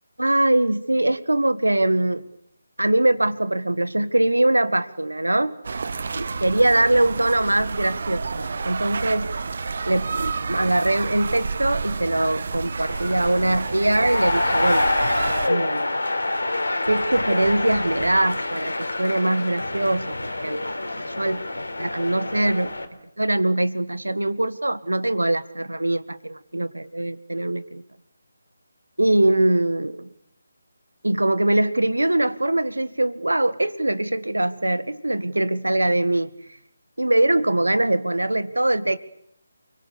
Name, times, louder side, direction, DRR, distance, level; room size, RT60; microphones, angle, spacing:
voice 1, 0.2-2.3 2.8-5.5 6.1-9.3 9.8-14.9 15.5-16.0 16.8-22.7 23.2-27.8 29.0-30.1 31.0-36.3 37.0-39.0, right 1 dB, 85° right, 14 dB, 1.8 m, -22 dB
sound 1, 5.6-15.5, right 4 dB, 55° right, 1.3 m, -30 dB
sound 2, 12.9-22.9, left 2 dB, 80° left, 3.8 m, -26 dB
29.5 x 23.5 x 7.0 m, 0.71 s
figure-of-eight pair, 150°, 0 cm